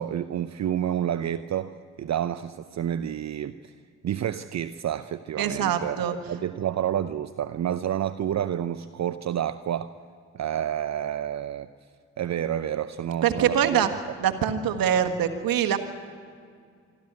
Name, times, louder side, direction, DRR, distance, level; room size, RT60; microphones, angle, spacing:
voice 1, 0.0-3.7 4.0-9.9 10.3-11.7 12.2-13.8, right 10 dB, 45° right, 12 dB, 0.7 m, -29 dB
voice 2, 5.4-6.1 13.2-13.9 14.2-15.8, right 9 dB, 65° right, 7 dB, 1.6 m, -24 dB
26.0 x 12.5 x 9.5 m, 2.2 s
hypercardioid pair, 40°, 38 cm